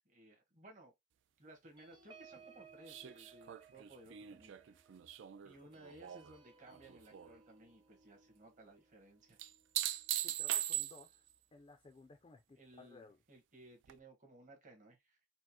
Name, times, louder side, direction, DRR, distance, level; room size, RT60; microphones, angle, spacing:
voice 1, 0.0-0.9 1.4-4.5 5.4-9.4 12.6-15.2, right 1 dB, 40° right, 1.2 m, -59 dB
sound 1, 1.8-10.7 11.1-11.3 11.6-11.9, right 5 dB, 25° right, 0.7 m, -63 dB
sound 2, 2.9-6.3 6.7-7.3 9.4-11.3 13.9-14.0, right 13 dB, 65° right, 0.3 m, -40 dB
voice 2, 10.2-11.3 11.5-13.2, left 3 dB, 30° left, 0.4 m, -59 dB
4.4 x 2.0 x 2.8 m
head